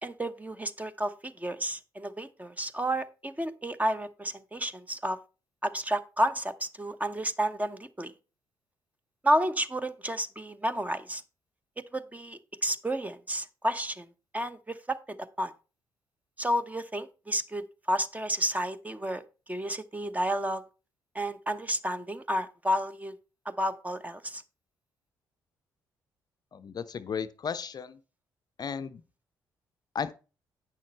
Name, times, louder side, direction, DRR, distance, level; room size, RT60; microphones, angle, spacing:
voice 1, 0.0-5.2 5.6-8.1 9.2-11.2 11.9-15.5 16.4-19.2 19.5-20.6 21.1-23.1 23.5-24.4, right 1 dB, 15° right, 0.9 m, -31 dB
voice 2, 26.5-28.0 28.6-29.0 29.9-30.1, left 6 dB, 45° left, 0.6 m, -34 dB
8.7 x 6.4 x 4.3 m
hypercardioid pair, 45°, 10 cm